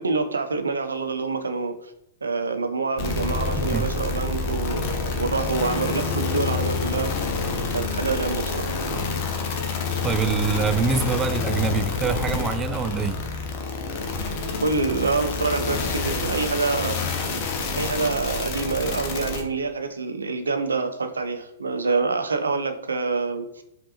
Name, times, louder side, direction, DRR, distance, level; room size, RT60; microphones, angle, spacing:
voice 1, 0.0-1.7 2.2-7.1 7.7-8.7 14.6-17.0 17.8-23.6, right 4 dB, 70° right, 0.5 m, -26 dB
sound 1, 3.0-19.4, left 4 dB, 40° left, 0.8 m, -28 dB
voice 2, 3.6-3.9 10.0-13.2, right 5 dB, 15° right, 0.3 m, -25 dB
5.2 x 2.5 x 2.9 m
figure-of-eight pair, 105°, 0 cm